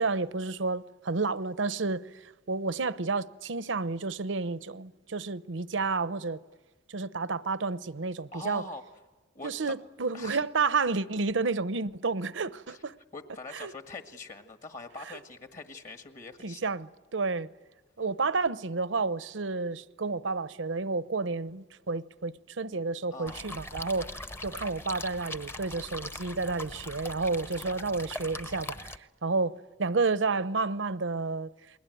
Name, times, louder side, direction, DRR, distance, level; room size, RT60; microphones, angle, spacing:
voice 1, 0.0-6.4 6.9-8.6 9.4-12.9 13.5-13.7 16.4-16.9 17.1-17.5 18.0-24.1 24.4-29.0 29.2-31.5, right 4 dB, 80° right, 0.9 m, -30 dB
voice 2, 8.3-8.8 9.4-9.8 10.1-10.4 12.7-12.8 13.1-16.7 23.1-23.5, left 3 dB, 40° left, 1.8 m, -43 dB
sound 1, 23.3-29.0, left 1 dB, 15° left, 0.9 m, -41 dB
29.5 x 21.5 x 9.3 m
head